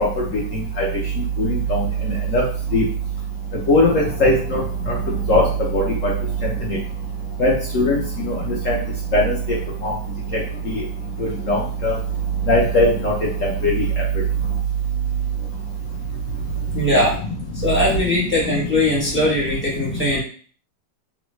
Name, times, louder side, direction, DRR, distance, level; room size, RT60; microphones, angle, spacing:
voice 1, 0.5-0.9 1.4-1.8 2.3-2.4 2.7-2.8 3.7-4.6 4.9-5.0 5.3-5.5 5.7-6.1 6.4-6.5 7.4-8.0 8.3-8.4 8.7-8.8 9.1-9.3 9.8-9.9 10.7-10.8 11.2-11.9 12.5-13.1 13.6-13.8, left 1 dB, 65° left, -4 dB, 0.8 m, -18 dB
voice 2, 16.7-17.2 17.4-20.2, left 1 dB, 15° right, -6 dB, 0.4 m, -20 dB
3.2 x 2.1 x 3.0 m, 0.43 s
omnidirectional pair, 2.0 m